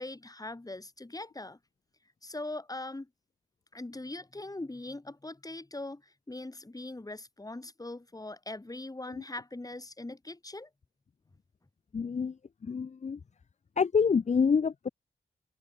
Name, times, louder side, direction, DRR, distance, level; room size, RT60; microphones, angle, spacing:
voice 1, 0.0-1.6 2.2-3.1 3.7-10.7, left 2 dB, 25° left, 4.5 m, -41 dB
voice 2, 11.9-12.4 12.6-13.2 13.8-14.9, left 5 dB, 50° left, 0.8 m, -27 dB
open air
cardioid pair, 45°, 15 cm